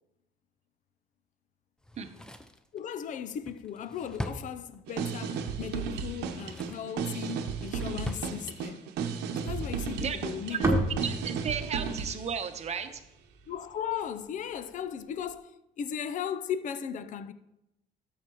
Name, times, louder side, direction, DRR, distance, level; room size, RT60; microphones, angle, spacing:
Drawer open or close, 1.8-5.1 6.0-6.9 7.3-8.3 8.6-8.7, left 1 dB, 5° left, 0.5 m, -41 dB
voice 1, 2.7-8.8 9.4-10.7 13.5-17.3, left 8 dB, 50° left, 0.5 m, -37 dB
sound 1, 4.9-12.3, right 6 dB, 90° right, 0.9 m, -34 dB
sound 2, 9.5-13.8, right 1 dB, 15° right, 1.6 m, -33 dB
voice 2, 11.0-13.0, right 7 dB, 40° right, 0.9 m, -34 dB
12.5 x 7.2 x 3.0 m
cardioid pair, 110°, 17 cm